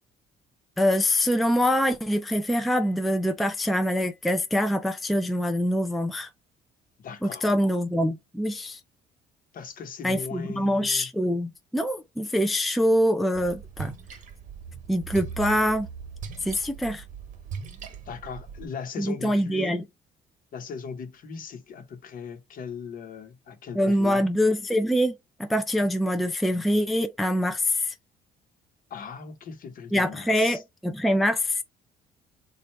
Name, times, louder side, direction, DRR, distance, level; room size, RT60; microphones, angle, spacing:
voice 1, 0.8-6.3 7.2-8.8 10.0-13.9 14.9-15.9 16.4-17.0 19.0-19.8 23.8-27.9 29.9-31.6, equal, ahead, 0.4 m, -24 dB
voice 2, 7.0-7.6 9.5-11.1 18.0-19.7 20.5-24.3 28.9-30.6, left 6 dB, 55° left, 1.1 m, -39 dB
Splash splatter, 13.3-18.6, right 6 dB, 50° right, 1.2 m, -39 dB
3.2 x 2.4 x 4.3 m
cardioid pair, 110°, 17 cm